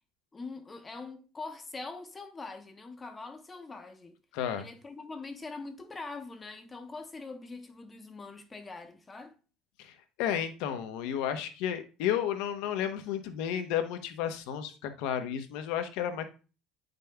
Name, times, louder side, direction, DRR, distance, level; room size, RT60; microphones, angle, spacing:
voice 1, 0.3-4.1 4.6-9.4, left 3 dB, 20° left, 0.9 m, -43 dB
voice 2, 4.3-4.7 9.8-16.2, left 9 dB, 80° left, 0.8 m, -32 dB
9.1 x 5.3 x 2.3 m
cardioid pair, 125°, 0 cm